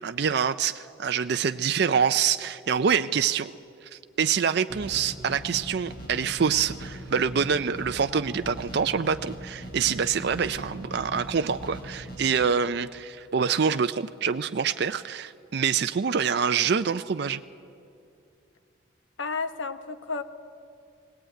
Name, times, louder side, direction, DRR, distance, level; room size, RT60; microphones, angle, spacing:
voice 1, 0.0-3.5 3.9-17.4, right 6 dB, 55° right, 10 dB, 0.4 m, -26 dB
sound 1, 4.7-12.2, right 1 dB, 45° left, 5.4 m, -40 dB
voice 2, 19.2-20.2, left 4 dB, 70° left, 10 dB, 1.0 m, -31 dB
19.0 x 18.0 x 9.0 m, 2.5 s
head